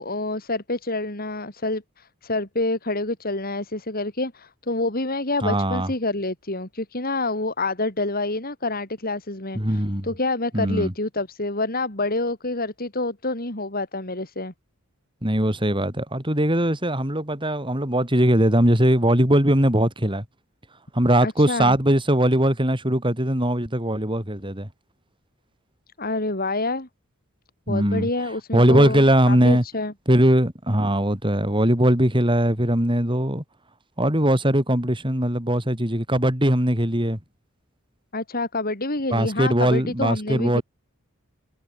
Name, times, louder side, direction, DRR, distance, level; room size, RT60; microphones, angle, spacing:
voice 1, 0.0-14.5 21.2-21.8 26.0-26.9 27.7-29.9 38.1-40.6, left 2 dB, 40° left, 4.3 m, -27 dB
voice 2, 5.4-5.9 9.5-10.1 10.5-10.9 15.2-20.2 20.9-24.7 27.7-28.1 28.5-29.6 30.1-33.4 34.0-37.2 39.1-40.6, right 1 dB, 25° right, 4.7 m, -20 dB
head